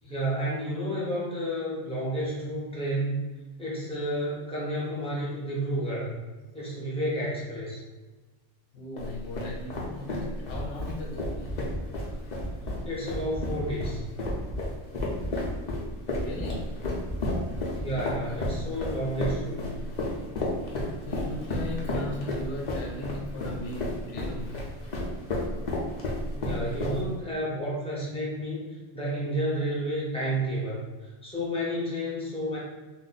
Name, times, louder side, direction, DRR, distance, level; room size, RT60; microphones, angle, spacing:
voice 1, 0.0-3.2 3.6-6.1 6.5-7.8 12.8-14.0 17.7-19.8 26.4-28.7 28.9-32.6, right 1 dB, 5° left, -7 dB, 0.8 m, -31 dB
voice 2, 8.7-11.5 16.2-16.7 18.1-18.4 21.0-24.7, left 2 dB, 65° left, -1 dB, 0.9 m, -38 dB
sound 1, 9.0-27.3, left 1 dB, 45° left, 0.6 m, -32 dB
sound 2, 10.5-10.9 11.2-12.1 12.4-12.8 13.1-14.0 14.3-14.7 15.0-15.8 16.1-16.5 16.8-17.9, equal, 40° right, 0.6 m, -35 dB
2.6 x 2.1 x 3.9 m, 1.2 s
omnidirectional pair, 1.2 m